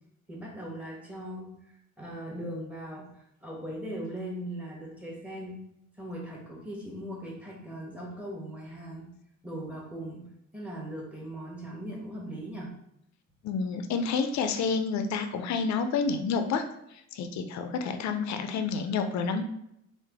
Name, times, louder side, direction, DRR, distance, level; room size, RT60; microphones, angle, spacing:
voice 1, 0.3-5.6 5.9-9.1 9.4-12.7, right 1 dB, 5° right, -3 dB, 1.0 m, -39 dB
voice 2, 13.4-16.7 17.1-19.5, left 5 dB, 65° left, 7 dB, 0.4 m, -29 dB
3.2 x 2.1 x 3.4 m, 0.80 s
cardioid pair, 90°, 30 cm